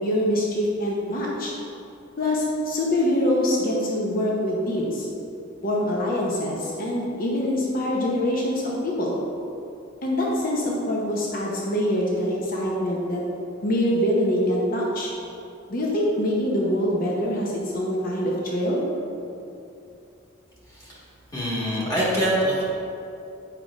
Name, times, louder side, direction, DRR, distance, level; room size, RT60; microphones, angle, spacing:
voice 1, 0.0-1.5 2.2-5.0 5.6-9.2 10.0-13.2 13.6-15.1 15.7-18.8, left 1 dB, 45° left, -3 dB, 0.7 m, -24 dB
voice 2, 21.3-22.6, equal, 20° left, -8 dB, 1.5 m, -24 dB
7.6 x 5.2 x 2.4 m, 2.7 s
head